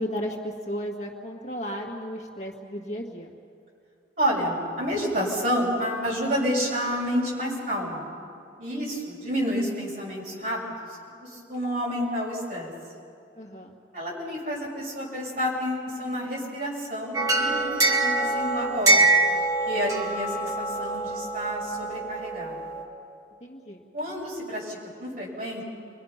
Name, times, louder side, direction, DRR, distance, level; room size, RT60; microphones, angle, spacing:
voice 1, 0.0-3.3 13.4-13.8 23.4-23.8, equal, 40° left, 0 dB, 2.1 m, -34 dB
voice 2, 4.2-8.0 8.6-10.6 11.2-12.7 13.9-19.1 19.7-22.7 23.9-25.6, equal, 50° right, -4 dB, 6.8 m, -29 dB
sound 1, 17.1-22.8, right 2 dB, 20° right, 2.0 m, -24 dB
28.5 x 23.5 x 5.9 m, 2.5 s
head